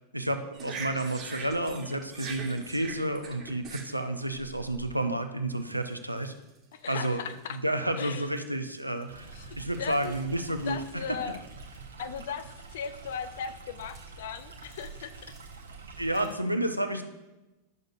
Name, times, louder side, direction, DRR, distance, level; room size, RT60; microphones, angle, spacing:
voice 1, 0.1-6.3 6.9-7.2 7.5-9.3 9.6-11.0 16.0-17.0, right 1 dB, 85° right, 7 dB, 0.6 m, -30 dB
sound 1, 0.5-5.0 5.7-5.8 6.2-6.6 7.3-7.4 8.4-8.5 8.8-11.8 12.0-13.5 13.8-14.1 14.6-15.5 16.1-16.3, right 5 dB, 30° right, 1.3 m, -44 dB
voice 2, 6.7-7.6 8.0-8.3 9.3-10.1 10.7-11.4 12.0-15.3 16.1-16.3, left 7 dB, 55° left, 11 dB, 0.5 m, -38 dB
Stream, 9.1-16.2, right 4 dB, 70° right, 1.0 m, -46 dB
10.5 x 6.5 x 2.6 m, 1.0 s
figure-of-eight pair, 90°, 0 cm